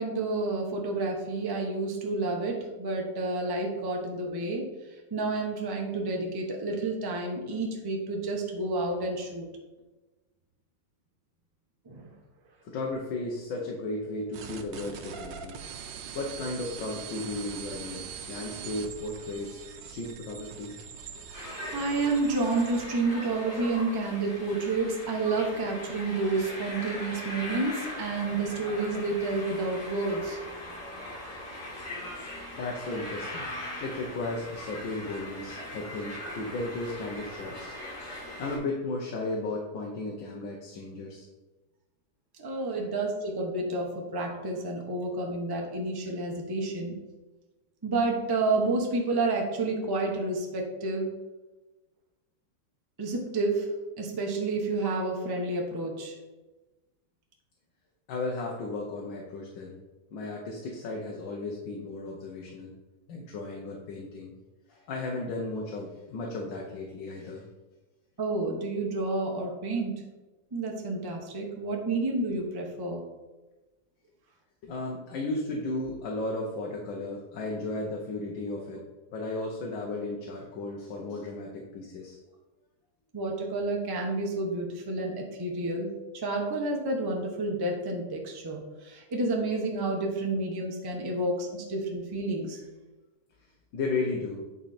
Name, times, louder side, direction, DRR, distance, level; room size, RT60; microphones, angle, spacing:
voice 1, 0.0-9.5 11.9-12.1 21.3-30.4 42.4-47.0 47.8-51.1 53.0-56.2 68.2-70.1 70.5-73.0 83.1-92.6, right 2 dB, 20° right, 0 dB, 0.7 m, -30 dB
voice 2, 12.6-15.6 16.1-20.8 21.2-21.3 32.6-33.5 33.8-37.8 38.1-41.3 42.7-42.9 58.1-59.8 60.1-62.7 63.1-64.3 64.7-67.4 74.6-78.8 79.1-82.2 91.0-91.2 93.4-94.4, left 2 dB, 85° left, -1 dB, 1.7 m, -35 dB
sound 1, 14.3-22.9, right 7 dB, 80° right, 1.4 m, -42 dB
sound 2, 21.3-38.6, left 1 dB, 60° left, 3.0 m, -40 dB
8.9 x 4.3 x 4.2 m, 1.1 s
omnidirectional pair, 2.0 m